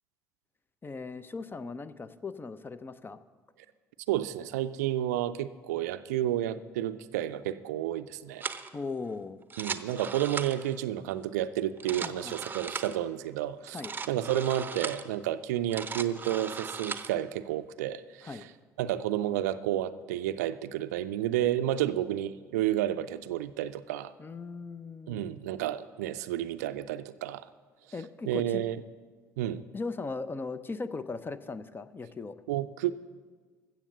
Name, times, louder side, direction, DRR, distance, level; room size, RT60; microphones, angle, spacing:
voice 1, 0.8-3.2 8.7-9.4 12.0-12.3 13.7-13.9 18.2-18.5 24.2-25.2 27.9-28.6 29.7-32.4, left 4 dB, 25° left, 14 dB, 0.6 m, -38 dB
voice 2, 4.1-8.4 9.6-13.8 14.1-18.5 18.8-24.1 25.1-27.5 28.3-28.8 29.4-29.6 32.5-32.9, right 12 dB, 70° right, 13 dB, 0.5 m, -31 dB
sound 1, 8.4-8.7 9.4-10.8 11.7-13.0 13.7-15.1 15.6-17.2, right 5 dB, 20° right, 0.8 m, -38 dB
14.5 x 7.4 x 6.8 m, 1.4 s
figure-of-eight pair, 55°, 9 cm